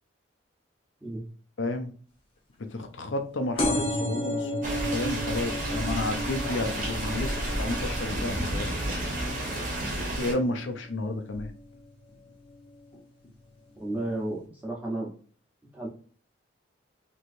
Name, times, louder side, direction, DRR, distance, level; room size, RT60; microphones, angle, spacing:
voice 1, 1.6-1.9 2.6-4.5 4.9-8.9 10.1-11.5, left 2 dB, 70° left, 7 dB, 0.6 m, -31 dB
sound 1, 3.6-10.8 11.3-11.8 12.6-12.7 12.9-13.0 13.2-13.3, left 1 dB, 25° left, 0.8 m, -33 dB
sound 2, 4.6-10.3, right 1 dB, 40° right, 1.1 m, -31 dB
voice 2, 13.8-15.1 15.7-15.9, right 1 dB, 5° right, -4 dB, 1.0 m, -32 dB
3.0 x 3.0 x 2.6 m, 0.42 s
head